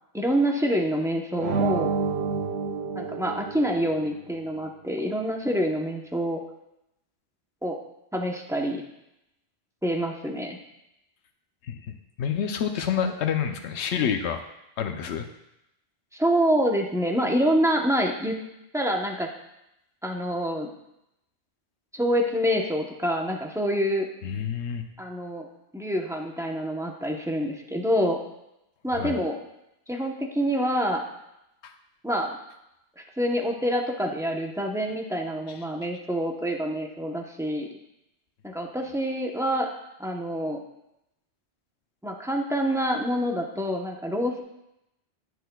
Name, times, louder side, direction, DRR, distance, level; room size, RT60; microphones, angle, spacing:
voice 1, 0.1-1.9 2.9-6.4 7.6-7.8 8.1-8.8 9.8-10.6 16.1-18.4 18.7-19.3 20.0-20.7 21.9-24.1 25.0-25.5 25.7-28.2 28.8-29.4 29.9-31.0 32.0-32.3 33.2-37.7 38.4-39.7 40.0-40.6 42.0-44.4, equal, 5° right, 0 dB, 0.8 m, -26 dB
sound 1, 1.4-4.1, right 4 dB, 70° right, 0.9 m, -29 dB
voice 2, 11.7-14.4 14.8-15.3 24.2-24.8 28.9-29.1 31.6-31.7 35.5-35.6, left 7 dB, 85° left, 6 dB, 0.9 m, -28 dB
17.0 x 6.2 x 2.3 m, 0.86 s
omnidirectional pair, 1.1 m